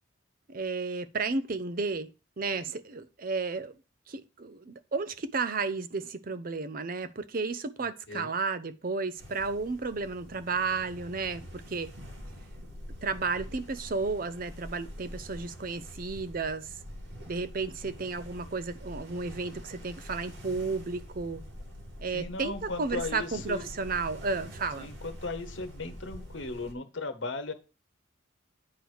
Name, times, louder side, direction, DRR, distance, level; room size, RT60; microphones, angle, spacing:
voice 1, 0.5-2.1 2.4-3.8 4.1-11.9 13.0-16.7 17.3-21.4 22.0-24.9, right 4 dB, 45° right, 0.6 m, -33 dB
voice 2, 7.8-8.3 22.1-23.7 24.8-27.5, left 3 dB, 70° left, 1.1 m, -37 dB
sound 1, 9.2-26.7, equal, 75° right, 2.0 m, -45 dB
9.4 x 3.3 x 6.2 m
head